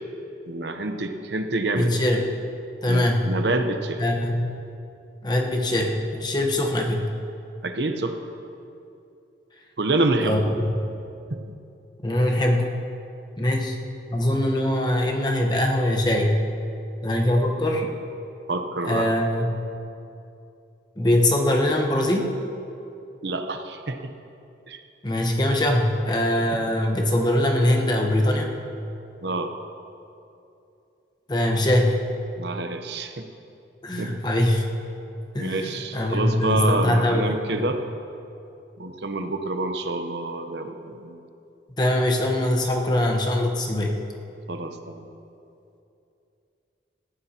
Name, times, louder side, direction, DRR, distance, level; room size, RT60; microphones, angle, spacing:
voice 1, 0.5-2.0 2.9-4.0 7.6-8.2 9.8-10.4 11.3-11.4 18.5-19.1 23.2-24.0 24.7-24.8 29.2-29.5 32.4-33.3 34.0-34.2 35.4-37.8 38.8-41.2 44.5-45.0, right 2 dB, 70° right, 6 dB, 0.9 m, -27 dB
voice 2, 1.7-2.3 2.8-3.3 4.0-4.7 5.2-7.0 10.2-10.8 12.0-12.8 13.4-13.8 14.1-16.4 17.0-17.9 18.8-19.7 21.0-22.3 25.0-28.5 31.3-32.0 33.8-34.7 35.3-37.4 41.8-43.9, left 1 dB, 25° left, 1 dB, 1.1 m, -22 dB
18.0 x 15.0 x 2.9 m, 2.7 s
head